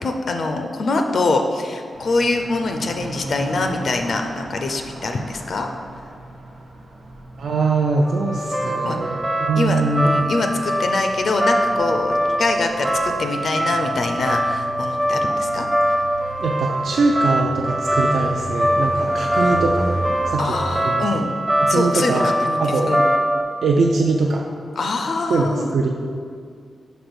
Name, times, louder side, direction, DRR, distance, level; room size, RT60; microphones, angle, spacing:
voice 1, 0.0-5.7 8.8-9.0 9.6-16.0 19.4-19.5 20.4-21.2 21.7-23.0 24.8-25.7, left 3 dB, 50° left, 5 dB, 0.4 m, -24 dB
sound 1, 1.9-20.9, right 1 dB, 90° right, 1.3 m, -36 dB
voice 2, 7.4-10.2 16.4-19.9 20.3-20.6 20.8-22.9 23.6-24.4 25.3-25.9, right 3 dB, 70° right, 0 dB, 0.4 m, -22 dB
sound 2, 8.1-23.4, right 1 dB, 15° right, 0.6 m, -23 dB
5.1 x 4.4 x 6.1 m, 2.2 s
wide cardioid pair, 170°, 0 cm